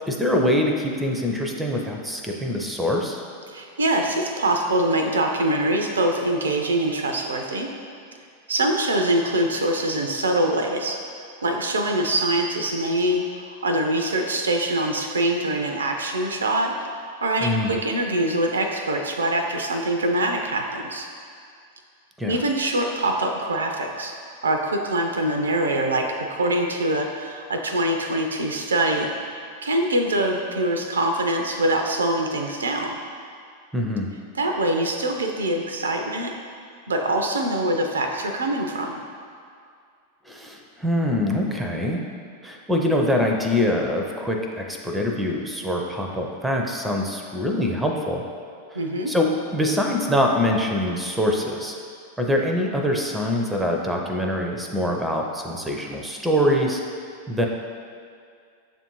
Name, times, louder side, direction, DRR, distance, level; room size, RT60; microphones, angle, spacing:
voice 1, 0.1-3.2 17.4-17.7 22.2-22.4 33.7-34.1 40.3-42.0 42.4-48.2 48.7-48.8 49.1-51.8 52.2-56.8 57.3-57.5, left 1 dB, 5° right, 1 dB, 0.5 m, -24 dB
voice 2, 3.5-7.7 8.5-11.0 11.4-16.7 17.2-21.1 22.3-24.2 24.4-33.0 34.3-36.3 36.9-39.0 48.7-49.1, right 1 dB, 70° right, 3 dB, 0.3 m, -24 dB
6.8 x 2.5 x 2.9 m, 2.3 s
figure-of-eight pair, 90°, 0 cm